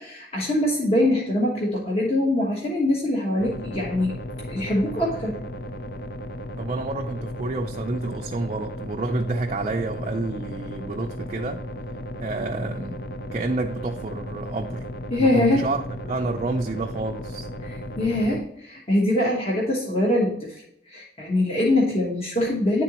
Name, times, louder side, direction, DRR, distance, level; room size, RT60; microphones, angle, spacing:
voice 1, 0.0-4.1 4.5-5.4 15.1-15.7 17.6-22.8, left 1 dB, 35° left, 1.2 m, -23 dB
sound 1, 3.4-18.4, equal, 60° left, 0.5 m, -35 dB
voice 2, 6.6-11.6 12.2-13.0 13.3-14.9 15.2-17.5, right 2 dB, 40° right, 0.4 m, -29 dB
10.0 x 3.7 x 2.9 m
head